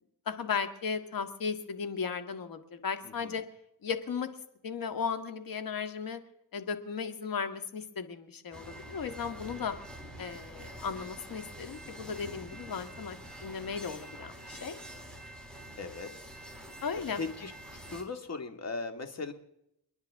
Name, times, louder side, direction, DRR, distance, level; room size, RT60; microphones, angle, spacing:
voice 1, 0.3-3.4 3.8-4.3 4.6-6.2 6.5-9.7 10.2-13.2 13.4-14.8 16.8-17.2, left 6 dB, 60° left, 8 dB, 1.9 m, -36 dB
voice 2, 3.0-3.4 15.8-16.1 17.2-19.3, left 4 dB, 40° left, 6 dB, 2.2 m, -38 dB
sound 1, 8.5-18.0, right 1 dB, ahead, 4.3 m, -46 dB
29.5 x 10.5 x 3.7 m, 0.78 s
cardioid pair, 90°, 39 cm